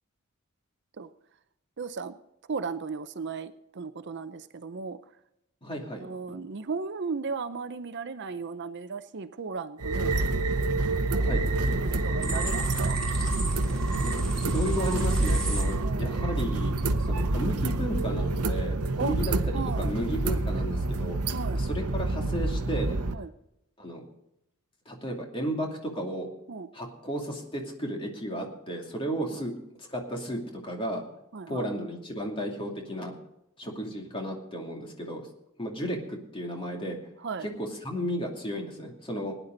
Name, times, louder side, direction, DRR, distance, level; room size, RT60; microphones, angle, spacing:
voice 1, 1.8-2.1 2.5-5.0 6.0-10.1 11.2-13.0 15.7-16.1 19.0-19.2 19.5-19.9 21.3-21.6 23.1-23.3 26.5-26.7 29.3-29.4 31.3-31.7 37.2-37.5, right 4 dB, 50° right, 12 dB, 0.6 m, -36 dB
voice 2, 5.6-6.0 11.2-11.4 14.3-19.2 19.8-21.2 21.6-23.0 23.8-24.0 24.9-26.3 26.7-29.5 29.9-31.0 31.5-33.1 33.6-35.3 35.6-37.0 37.4-39.3, equal, 25° left, 1 dB, 2.7 m, -33 dB
sound 1, 9.8-23.1, right 2 dB, 90° right, 0.8 m, -27 dB
sound 2, 12.2-15.6, right 2 dB, 5° left, 3.1 m, -36 dB
19.5 x 10.0 x 4.0 m, 0.83 s
head